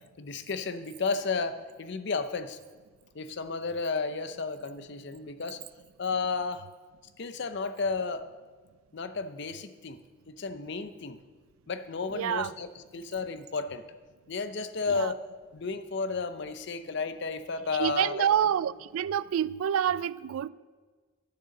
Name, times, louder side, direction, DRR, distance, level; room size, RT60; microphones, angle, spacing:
voice 1, 0.2-2.6 3.1-5.6 6.0-6.7 7.2-8.3 8.9-10.0 10.3-11.2 11.7-12.7 12.9-13.8 14.3-15.2 15.5-18.3, left 4 dB, 55° left, 0.6 m, -32 dB
voice 2, 12.1-12.5 14.9-15.1 17.8-20.5, right 9 dB, 85° right, 0.3 m, -27 dB
10.0 x 6.7 x 6.4 m
head